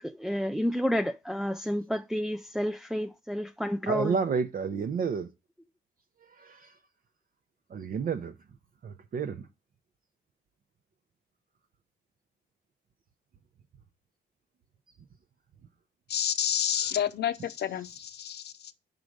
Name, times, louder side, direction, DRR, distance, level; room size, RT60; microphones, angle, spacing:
voice 1, 0.0-4.1, equal, ahead, 0.3 m, -30 dB
voice 2, 3.9-5.3 6.3-6.7 7.7-8.3 8.8-9.5 16.7-17.0 17.4-17.5, right 6 dB, 45° right, 0.7 m, -31 dB
voice 3, 16.1-18.7, left 9 dB, 55° left, 0.7 m, -30 dB
5.3 x 4.8 x 6.2 m
cardioid pair, 90°, 20 cm